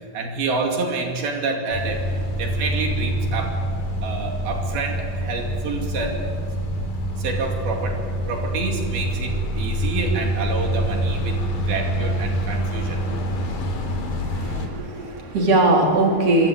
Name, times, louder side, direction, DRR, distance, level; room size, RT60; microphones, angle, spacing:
voice 1, 0.1-2.0 2.4-3.6 4.0-6.2 7.2-8.0 8.3-13.0, right 4 dB, 80° right, 2 dB, 4.5 m, -28 dB
sound 1, 1.7-14.7, equal, 75° left, 5.3 m, -26 dB
voice 2, 14.3-16.5, right 2 dB, 40° right, 0 dB, 5.2 m, -20 dB
27.5 x 25.0 x 8.8 m, 2.1 s
omnidirectional pair, 4.2 m